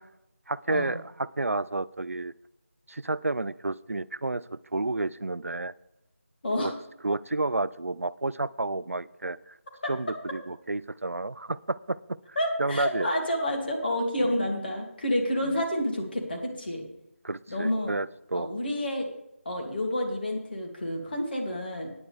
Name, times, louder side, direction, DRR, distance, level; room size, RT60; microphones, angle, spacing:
voice 1, 0.5-2.3 2.9-5.7 6.6-6.7 7.0-9.6 9.8-12.2 12.6-13.1 14.2-14.3 15.5-15.6 17.2-18.5, right 2 dB, 80° right, 18 dB, 0.5 m, -31 dB
voice 2, 12.4-16.8 17.5-17.9 18.3-19.1 19.4-21.9, left 1 dB, 45° left, 1 dB, 2.8 m, -29 dB
14.5 x 9.7 x 3.5 m, 0.82 s
figure-of-eight pair, 165°, 7 cm